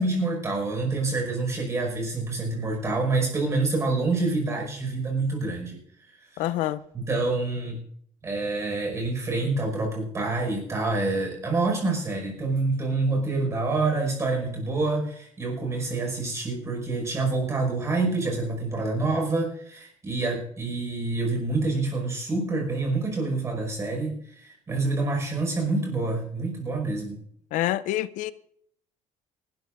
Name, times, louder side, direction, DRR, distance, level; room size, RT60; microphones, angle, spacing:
voice 1, 0.0-5.8 6.2-6.4 6.9-7.8 8.2-27.2, right 3 dB, 20° right, 5.4 m, -27 dB
voice 2, 6.4-6.8 27.5-28.3, left 14 dB, 80° left, 0.6 m, -26 dB
28.0 x 12.5 x 2.6 m
cardioid pair, 175°, 13 cm